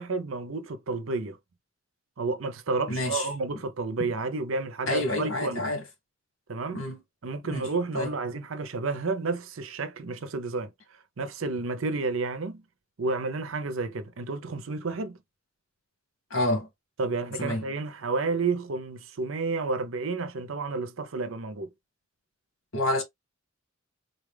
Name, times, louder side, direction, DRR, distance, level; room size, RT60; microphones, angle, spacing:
voice 1, 0.0-1.4 2.2-5.6 6.5-6.8 7.2-10.7 11.2-12.6 13.0-15.2 17.0-21.7, right 3 dB, 75° right, 0.7 m, -31 dB
voice 2, 2.9-3.3 4.0-4.1 4.9-5.8 6.7-7.0 7.4-7.7 7.9-8.1 16.3-16.7 17.4-17.7 22.7-23.0, left 2 dB, 90° left, 1.5 m, -28 dB
4.1 x 2.4 x 3.3 m
head